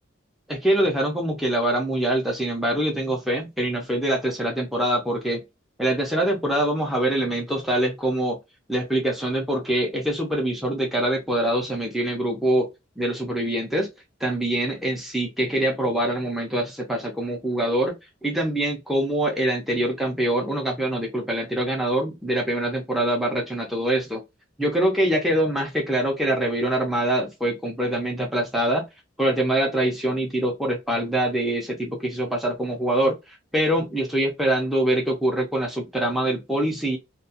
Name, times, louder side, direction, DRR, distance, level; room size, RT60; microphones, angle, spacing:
voice 1, 0.5-5.4 5.8-8.4 8.7-12.7 13.0-13.9 14.2-18.0 18.2-24.2 24.6-28.8 29.2-37.0, right 1 dB, ahead, 0.5 m, -24 dB
2.3 x 2.2 x 2.7 m
head